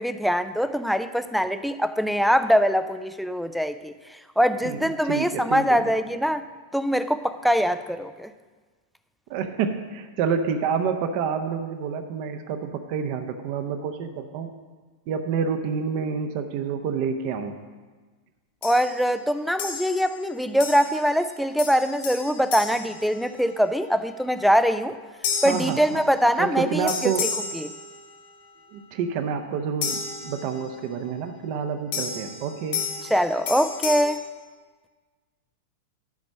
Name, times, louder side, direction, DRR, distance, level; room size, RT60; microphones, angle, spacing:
voice 1, 0.0-6.5 6.7-8.3 18.6-25.0 25.4-27.1 27.5-27.7 33.1-34.2, equal, ahead, 11 dB, 0.4 m, -23 dB
voice 2, 4.6-5.8 9.3-14.5 15.1-17.5 25.4-25.8 26.4-27.3 28.7-32.8, right 6 dB, 45° right, 7 dB, 0.8 m, -28 dB
sound 1, 18.6-19.0 19.6-20.2 20.6-21.2 21.6-23.7 25.2-26.4 26.9-28.3 29.8-30.8 31.9-34.0, left 5 dB, 50° left, 1.7 m, -33 dB
10.5 x 5.2 x 6.3 m, 1.4 s
figure-of-eight pair, 90°, 0 cm